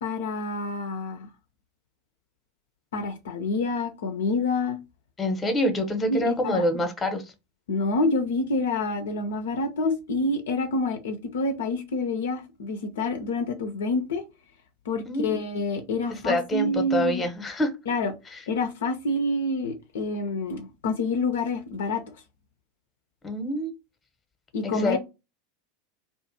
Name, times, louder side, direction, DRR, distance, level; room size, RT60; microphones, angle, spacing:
voice 1, 0.0-1.3 2.9-4.8 6.1-6.8 7.7-14.2 14.9-17.2 17.9-18.1 18.5-22.0 24.5-25.0, left 2 dB, 65° left, 0.5 m, -27 dB
voice 2, 5.2-7.3 15.1-15.4 16.1-17.7 18.3-18.4 23.2-23.7 24.6-25.0, left 1 dB, 20° left, 0.8 m, -26 dB
2.5 x 2.4 x 2.6 m
figure-of-eight pair, 85°, 0 cm